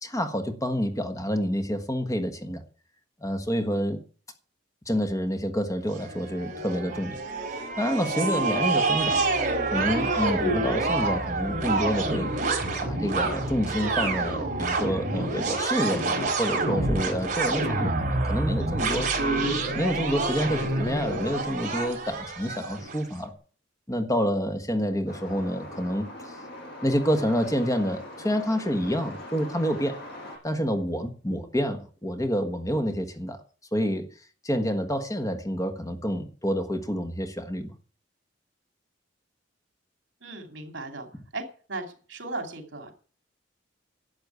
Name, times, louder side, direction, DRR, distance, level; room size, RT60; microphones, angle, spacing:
voice 1, 0.0-2.6 3.2-4.0 4.9-7.2 7.8-9.3 9.7-12.3 12.8-19.1 19.7-23.3 23.9-26.3 26.8-30.0 30.4-33.4 33.7-34.1 34.4-37.7, equal, 15° left, 1.4 m, -28 dB
sound 1, 5.9-23.0, right 3 dB, 40° right, 4.4 m, -27 dB
Truck, 25.1-30.4, left 1 dB, 55° left, 7.1 m, -42 dB
voice 2, 40.2-41.1 41.3-42.9, right 2 dB, 70° right, 2.8 m, -37 dB
12.0 x 8.1 x 9.4 m
head